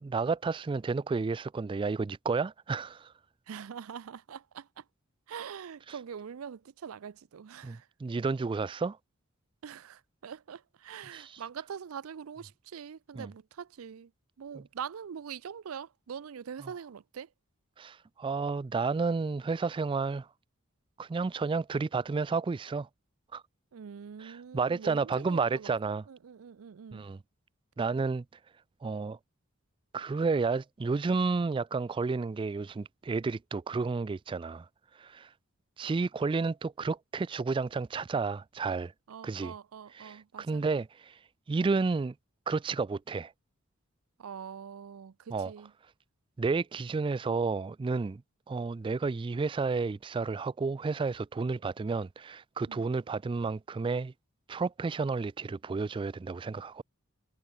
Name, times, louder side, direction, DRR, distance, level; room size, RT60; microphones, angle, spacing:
voice 1, 0.0-3.1 7.6-9.0 11.1-11.4 13.2-13.3 17.8-20.3 21.0-22.9 23.3-23.4 24.2-26.0 26.9-27.2 27.8-28.2 28.8-29.2 29.9-34.7 35.0-35.3 35.8-38.9 39.2-39.5 39.9-41.2 41.5-42.1 42.5-43.3 45.3-45.5 46.4-48.2 48.5-54.1 54.5-56.8, right 4 dB, 25° right, 0.3 m, -31 dB
voice 2, 3.5-4.8 5.3-7.9 9.6-14.1 14.4-17.3 23.7-27.0 39.1-40.6 44.2-45.7 52.7-52.9, right 7 dB, 85° right, 0.5 m, -43 dB
head